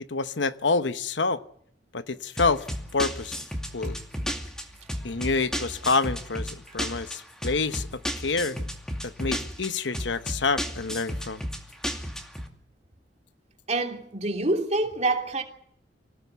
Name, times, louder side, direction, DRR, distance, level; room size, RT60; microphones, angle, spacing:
voice 1, 0.1-1.4 1.9-2.6 2.9-3.4 3.7-4.0 5.0-7.9 8.2-8.7 9.0-11.4, left 4 dB, 75° left, 1.0 m, -27 dB
sound 1, 2.4-12.5, equal, 5° left, 2.4 m, -33 dB
voice 2, 13.7-15.4, right 2 dB, 35° right, 3.0 m, -26 dB
25.5 x 17.0 x 8.2 m
head